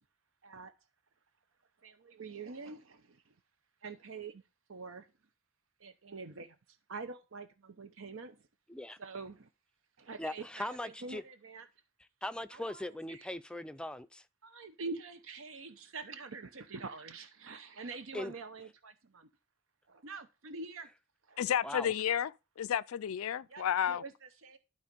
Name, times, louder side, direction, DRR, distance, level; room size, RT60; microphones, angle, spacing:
voice 1, 1.8-3.3 3.8-4.4 4.7-5.1 5.8-8.4 9.0-9.5 10.0-11.7 12.5-12.8 13.1-13.3 14.4-19.3 19.9-20.9 21.3-21.4 23.5-24.6, right 4 dB, 70° right, 0.8 m, -45 dB
voice 2, 10.2-11.2 12.2-14.2 18.1-18.3 21.6-21.9, left 1 dB, 5° left, 0.5 m, -40 dB
voice 3, 21.4-22.3 22.6-24.0, left 9 dB, 85° left, 0.4 m, -31 dB
12.0 x 4.3 x 5.2 m
head